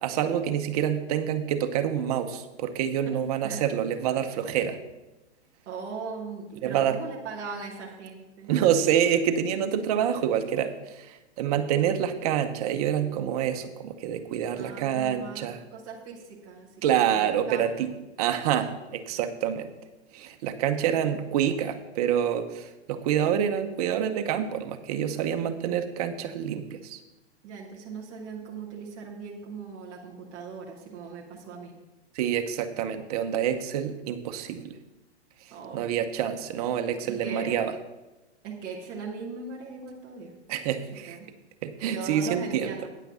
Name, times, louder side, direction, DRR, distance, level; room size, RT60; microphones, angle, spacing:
voice 1, 0.0-4.8 6.6-7.0 8.5-15.6 16.8-17.9 18.2-19.7 20.1-27.0 32.1-34.8 35.7-37.7 40.5-41.2 41.6-42.7, right 9 dB, 35° right, 7 dB, 0.8 m, -27 dB
voice 2, 3.1-3.6 5.7-8.5 14.6-15.5 15.7-17.8 20.8-21.2 27.4-31.7 35.5-35.8 37.0-37.6 38.4-40.3 41.1-41.3 41.8-42.8, right 5 dB, 10° right, -5 dB, 0.3 m, -39 dB
9.3 x 5.8 x 6.9 m, 1.0 s
hypercardioid pair, 155°, 33 cm